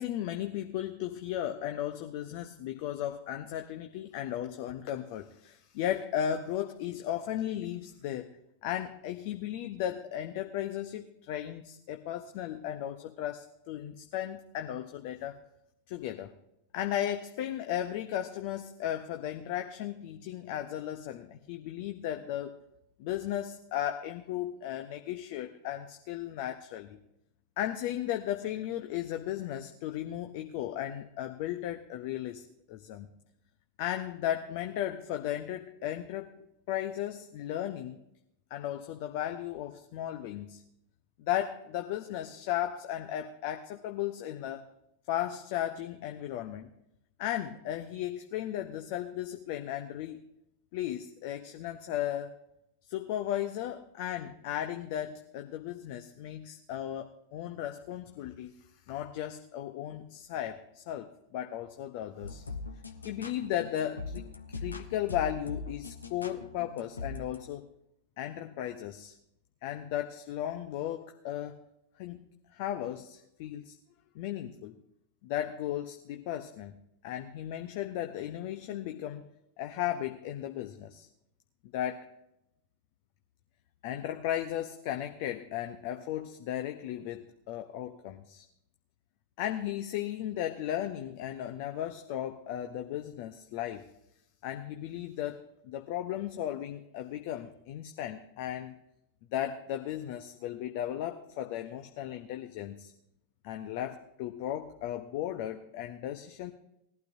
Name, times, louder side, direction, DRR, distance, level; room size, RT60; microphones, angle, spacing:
voice 1, 0.0-8.4 8.6-15.4 15.9-16.3 16.7-22.6 23.0-27.0 27.6-33.1 33.8-36.3 36.7-38.0 38.5-40.6 41.2-44.6 45.1-46.7 47.2-50.2 50.7-52.3 52.9-58.5 58.9-62.4 63.0-67.7 68.2-69.1 69.6-71.5 72.0-73.8 74.1-74.7 75.2-76.7 77.0-79.2 79.6-81.1 81.7-82.1 83.8-88.4 89.4-93.9 94.4-98.8 99.3-102.9 103.4-106.5, left 11 dB, 45° left, 6 dB, 0.8 m, -35 dB
sound 1, 62.2-67.5, left 3 dB, 75° left, 1.0 m, -41 dB
19.5 x 12.0 x 2.7 m, 0.82 s
figure-of-eight pair, 90°, 0 cm